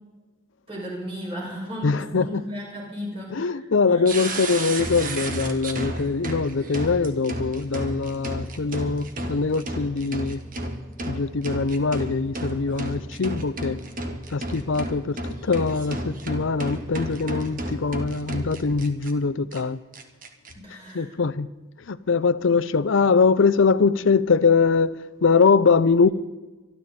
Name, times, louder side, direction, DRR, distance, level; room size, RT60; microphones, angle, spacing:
voice 1, 0.7-4.2 20.5-21.1, equal, 30° right, 6.3 m, -35 dB
voice 2, 1.8-2.4 3.3-10.4 11.1-13.8 14.3-15.2 15.4-19.8 20.9-21.5 21.9-26.1, left 4 dB, 85° left, 0.6 m, -22 dB
sound 1, 4.0-19.1 19.5-19.6 19.9-20.5, right 1 dB, 45° right, 1.6 m, -32 dB
24.5 x 12.5 x 4.3 m
head